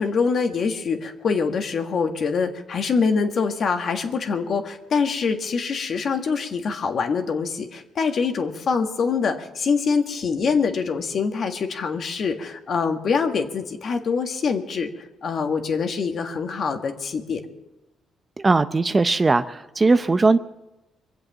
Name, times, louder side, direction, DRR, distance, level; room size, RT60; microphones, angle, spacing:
voice 1, 0.0-14.9 15.2-17.4, left 5 dB, 55° left, 5 dB, 1.7 m, -24 dB
voice 2, 18.4-20.4, right 3 dB, 25° right, 12 dB, 0.6 m, -19 dB
23.5 x 8.0 x 7.4 m, 0.98 s
cardioid pair, 90°, 0 cm